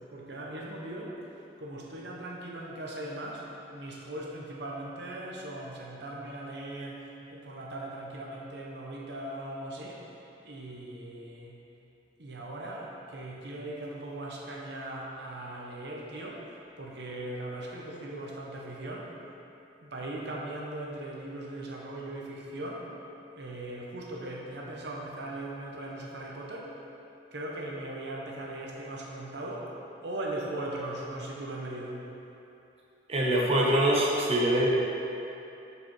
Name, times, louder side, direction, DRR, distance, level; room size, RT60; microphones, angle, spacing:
voice 1, 0.1-1.2 1.6-10.1 10.4-11.6 12.2-16.5 16.8-19.1 19.8-22.9 23.4-26.7 27.3-29.7 30.0-32.0, right 1 dB, 70° right, -2 dB, 0.9 m, -39 dB
voice 2, 33.1-34.7, right 1 dB, 35° right, -4 dB, 0.9 m, -24 dB
7.2 x 5.1 x 4.6 m, 2.9 s
head